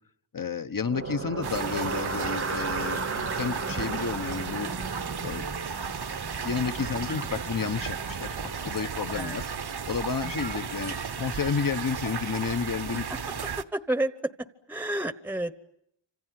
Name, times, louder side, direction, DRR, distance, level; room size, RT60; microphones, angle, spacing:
voice 1, 0.3-4.7 5.2-5.4 6.4-9.5 9.9-13.0, left 5 dB, 50° left, 10 dB, 1.1 m, -31 dB
sound 1, 0.8-8.9, right 4 dB, 30° right, 1.0 m, -36 dB
sound 2, 1.4-13.6, right 6 dB, 60° right, 1.1 m, -34 dB
sound 3, 3.9-11.3, left 4 dB, 80° left, 6.2 m, -53 dB
voice 2, 13.7-14.3 14.7-15.6, right 1 dB, 5° right, 13 dB, 1.0 m, -31 dB
28.0 x 26.5 x 7.7 m, 0.76 s
wide cardioid pair, 90°, 44 cm